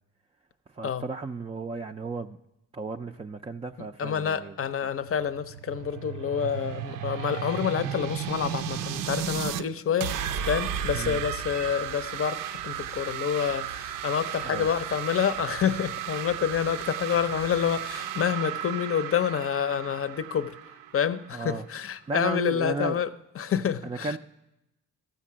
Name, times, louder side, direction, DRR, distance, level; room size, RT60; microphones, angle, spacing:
voice 1, 0.7-2.4 2.7-4.5 10.9-11.2 14.4-14.7 21.3-21.7 22.1-23.0 23.8-24.2, right 3 dB, 20° right, 0.4 m, -34 dB
voice 2, 4.0-10.2 10.5-20.6 20.9-23.1 23.4-24.2, left 8 dB, 40° left, 0.6 m, -28 dB
sound 1, 5.0-9.6 10.0-21.6, right 10 dB, 75° right, 0.5 m, -34 dB
14.0 x 5.9 x 7.4 m
cardioid pair, 70°, 33 cm